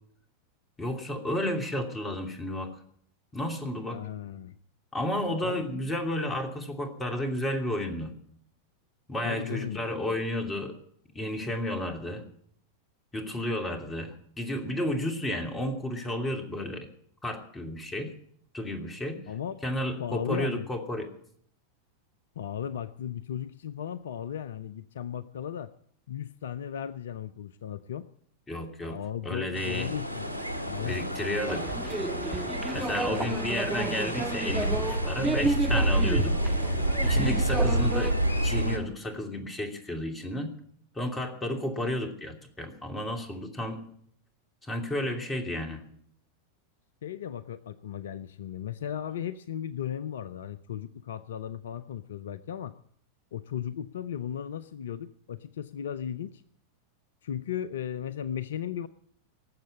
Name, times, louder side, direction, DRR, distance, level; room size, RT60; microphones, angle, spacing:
voice 1, 0.8-2.7 3.3-4.0 4.9-8.1 9.1-10.8 11.1-12.2 13.1-16.9 17.2-18.1 18.5-19.2 19.6-21.1 28.5-29.9 30.8-31.8 32.7-36.4 36.7-36.8 37.0-38.2 38.4-40.5 40.9-43.8 44.6-45.8, left 1 dB, 15° left, 4 dB, 2.7 m, -32 dB
voice 2, 3.9-4.6 5.4-5.6 9.2-9.8 19.3-19.6 20.0-20.7 22.4-25.7 26.1-28.1 28.9-30.3 30.7-31.0 33.0-33.5 47.0-52.7 53.3-56.4 57.2-58.9, left 9 dB, 60° left, 16 dB, 0.5 m, -36 dB
sound 1, 29.5-38.8, right 1 dB, 85° left, 1.7 m, -28 dB
sound 2, 31.5-38.1, right 3 dB, 10° right, 0.8 m, -32 dB
18.5 x 7.5 x 8.4 m, 0.64 s
figure-of-eight pair, 90°, 0 cm